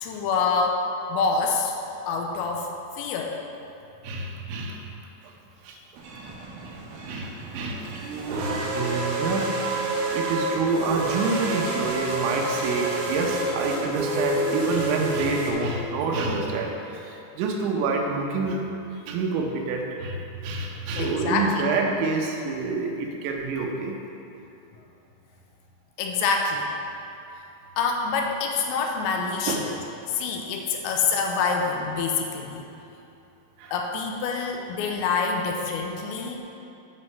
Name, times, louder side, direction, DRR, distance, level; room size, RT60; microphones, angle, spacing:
voice 1, 0.0-1.7 2.1-2.7 3.0-3.4 21.0-21.6 26.0-26.7 27.8-29.7 30.1-32.6 33.7-36.4, left 4 dB, 80° left, 1 dB, 2.9 m, -26 dB
voice 2, 4.0-4.8 5.6-5.8 6.6-6.8 7.1-18.6 19.1-24.0 29.5-29.7 33.6-33.7, right 3 dB, 85° right, 1 dB, 3.2 m, -28 dB
sound 1, 6.0-15.5, right 2 dB, 70° right, 2.5 m, -29 dB
9.3 x 5.3 x 5.6 m, 2.8 s
omnidirectional pair, 5.2 m